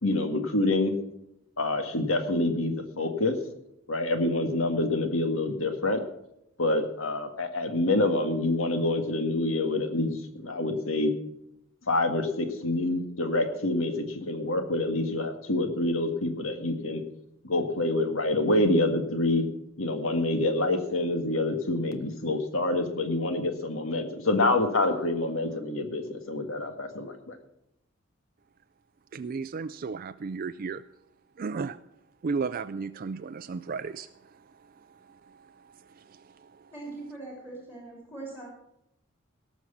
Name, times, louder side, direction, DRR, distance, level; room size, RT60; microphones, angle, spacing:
voice 1, 0.0-0.9 1.6-3.4 3.9-6.0 6.6-11.1 11.9-17.0 17.4-19.4 19.8-27.4, left 2 dB, 85° left, 6 dB, 1.9 m, -27 dB
voice 2, 29.1-30.8 31.4-31.8 32.2-34.1, right 4 dB, 45° right, 11 dB, 0.4 m, -33 dB
voice 3, 36.7-38.5, right 2 dB, 10° left, -3 dB, 3.1 m, -41 dB
18.0 x 6.3 x 7.1 m, 0.81 s
head